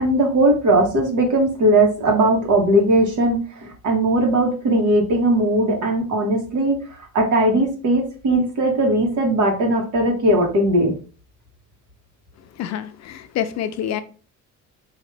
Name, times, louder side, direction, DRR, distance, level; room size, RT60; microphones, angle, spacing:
voice 1, 0.0-6.9 7.1-10.9, right 1 dB, 70° right, 1.4 m, -19 dB
voice 2, 12.4-14.0, left 10 dB, 60° left, 0.5 m, -27 dB
4.9 x 2.8 x 3.3 m
cardioid pair, 155°, 31 cm